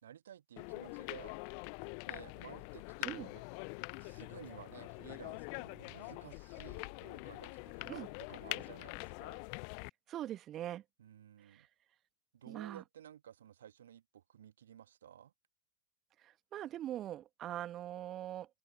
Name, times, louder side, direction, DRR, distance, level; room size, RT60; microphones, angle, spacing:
voice 1, 0.0-1.3 2.1-3.4 4.0-9.4 11.0-11.7 12.3-15.3, right 10 dB, 65° right, 1.8 m, -54 dB
sound 1, 0.6-9.9, left 40 dB or more, 45° left, 0.7 m, -44 dB
voice 2, 10.1-10.8 11.4-11.7 12.5-12.8 16.2-18.6, right 12 dB, 30° right, 1.6 m, -42 dB
open air
figure-of-eight pair, 90°, 0 cm